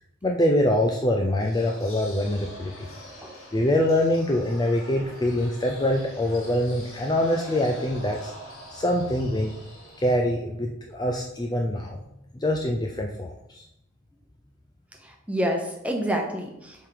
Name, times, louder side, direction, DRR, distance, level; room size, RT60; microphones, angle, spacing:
voice 1, 0.2-2.7 3.5-8.3 8.7-9.5 10.0-12.0 12.4-13.6, left 1 dB, 20° left, 1 dB, 0.5 m, -24 dB
sound 1, 1.4-10.1, equal, 75° left, 2.1 m, -45 dB
voice 2, 15.0-16.9, equal, 5° right, 2 dB, 0.9 m, -28 dB
7.4 x 3.8 x 5.0 m, 0.83 s
head